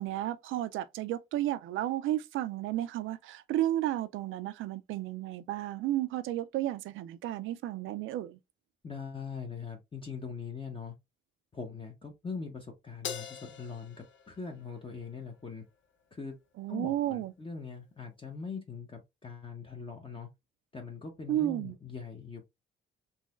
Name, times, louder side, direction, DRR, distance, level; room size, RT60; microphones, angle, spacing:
voice 1, 0.0-8.4 16.6-17.3 21.3-21.8, right 13 dB, 85° right, 0.5 m, -32 dB
voice 2, 8.8-10.9 11.5-15.6 16.1-16.3 16.7-20.3 20.7-22.5, left 5 dB, 25° left, 0.9 m, -42 dB
Crash cymbal, 13.0-15.6, left 8 dB, 75° left, 0.7 m, -44 dB
3.9 x 2.8 x 2.4 m
cardioid pair, 90°, 20 cm